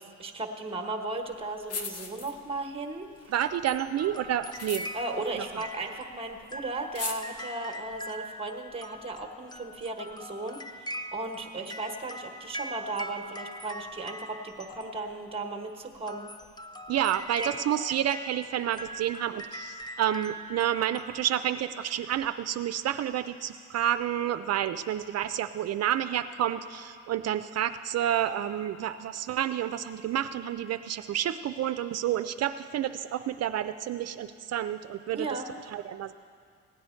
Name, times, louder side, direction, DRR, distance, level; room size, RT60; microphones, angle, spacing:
voice 1, 0.0-3.1 4.9-16.3 17.4-17.5 35.1-35.5, right 2 dB, 20° right, 3 dB, 1.2 m, -36 dB
sound 1, 1.3-1.4 1.6-2.7 3.1-6.1 6.4-6.5 6.8-7.2, left 4 dB, 55° left, 1.0 m, -38 dB
voice 2, 3.3-4.9 5.4-5.5 16.9-35.3 35.7-36.1, right 11 dB, 55° right, 10 dB, 0.4 m, -29 dB
sound 2, 3.4-15.3 16.0-21.2, equal, 15° left, 0.5 m, -42 dB
17.0 x 9.4 x 4.4 m, 2.2 s
cardioid pair, 90°, 30 cm